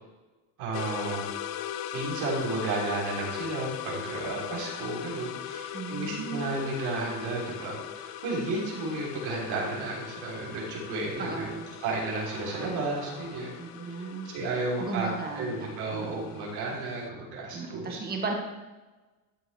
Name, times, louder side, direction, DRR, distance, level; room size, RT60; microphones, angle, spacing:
voice 1, 0.6-1.2 1.9-13.9 14.2-15.1 15.3-18.0, right 2 dB, 65° right, -4 dB, 3.6 m, -33 dB
sound 1, 0.7-17.1, left 11 dB, 60° left, 0.7 m, -40 dB
voice 2, 5.7-6.5 11.2-11.6 13.6-14.3 14.8-15.7 15.9-16.3 17.5-18.3, right 4 dB, 25° right, 1 dB, 1.7 m, -35 dB
sound 2, 11.5-14.0, left 2 dB, 40° left, 2.4 m, -50 dB
12.5 x 7.6 x 3.4 m, 1.2 s
cardioid pair, 145°, 40 cm